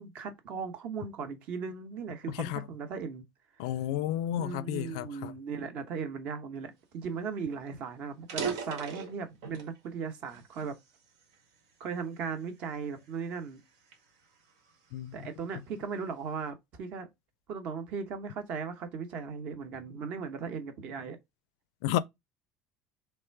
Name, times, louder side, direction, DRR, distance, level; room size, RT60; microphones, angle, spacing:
voice 1, 0.0-3.2 4.4-10.8 11.8-13.6 15.1-17.1 17.5-21.2, right 5 dB, 40° right, 0.9 m, -37 dB
voice 2, 2.3-2.6 3.6-5.3 14.9-15.1 21.8-22.0, left 12 dB, 80° left, 0.4 m, -32 dB
sound 1, 7.1-7.2 7.5-7.6 8.1-9.8 10.3-11.6 12.2-12.4 13.1-15.1, right 6 dB, 85° right, 1.7 m, -39 dB
3.5 x 3.3 x 4.5 m
cardioid pair, 175°, 3 cm